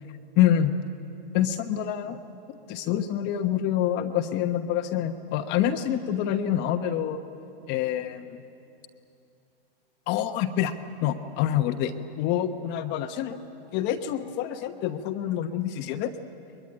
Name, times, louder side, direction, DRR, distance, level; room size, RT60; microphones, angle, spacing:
voice 1, 0.4-0.7 1.3-2.2 2.5-7.2 7.7-8.4 10.1-10.7 11.0-13.4 13.7-16.1, left 10 dB, 35° left, 7 dB, 1.1 m, -26 dB
23.0 x 22.0 x 9.7 m, 2.8 s
hypercardioid pair, 135°, 31 cm